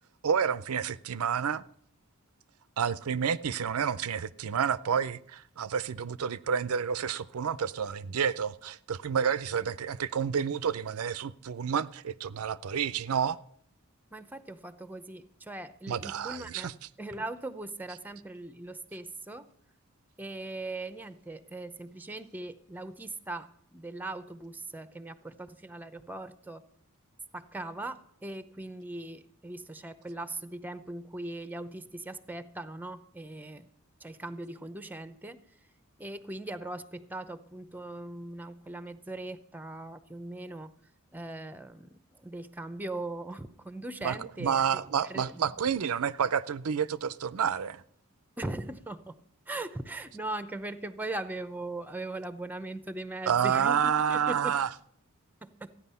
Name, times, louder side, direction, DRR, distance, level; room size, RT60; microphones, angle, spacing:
voice 1, 0.2-1.6 2.8-13.4 15.9-16.7 44.0-47.8 53.3-54.7, right 7 dB, 85° right, 0.5 m, -29 dB
voice 2, 14.1-16.7 17.0-19.5 20.2-23.5 23.7-26.6 27.3-33.7 34.0-35.4 36.0-40.7 41.1-41.9 42.2-44.6 45.1-45.5 48.4-49.2 49.5-54.6 55.4-55.7, right 2 dB, 10° right, 0.7 m, -40 dB
14.5 x 10.0 x 5.6 m
head